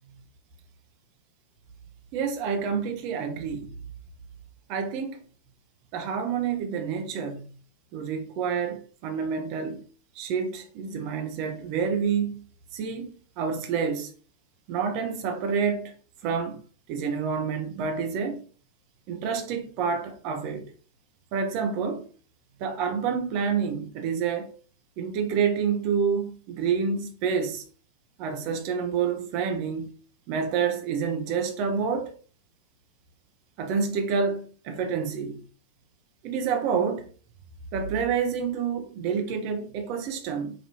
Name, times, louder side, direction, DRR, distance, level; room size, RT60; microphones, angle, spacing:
voice 1, 2.1-3.7 4.7-5.2 5.9-7.4 7.9-9.8 10.2-12.4 12.7-14.1 14.7-15.9 16.2-16.6 16.9-18.4 19.1-20.7 21.3-22.1 22.6-24.5 25.0-27.6 28.2-29.9 30.3-32.1 33.6-35.4 36.2-37.1 37.7-40.5, right 6 dB, 45° right, 0.8 m, -28 dB
5.0 x 2.6 x 2.9 m
figure-of-eight pair, 90°, 0 cm